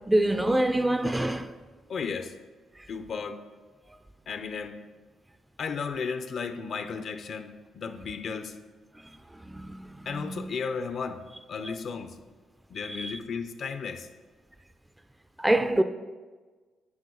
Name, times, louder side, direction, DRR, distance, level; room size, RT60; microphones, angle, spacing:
voice 1, 0.1-1.5 9.5-9.9 10.1-10.4 11.7-11.8 12.9-13.1 15.4-15.8, right 1 dB, 10° right, 0.4 m, -25 dB
voice 2, 1.9-2.3 2.9-3.4 4.3-4.8 5.6-8.6 10.1-12.2 12.7-14.1, left 5 dB, 55° left, 0.6 m, -34 dB
9.5 x 4.8 x 3.8 m
cardioid pair, 90°, 0 cm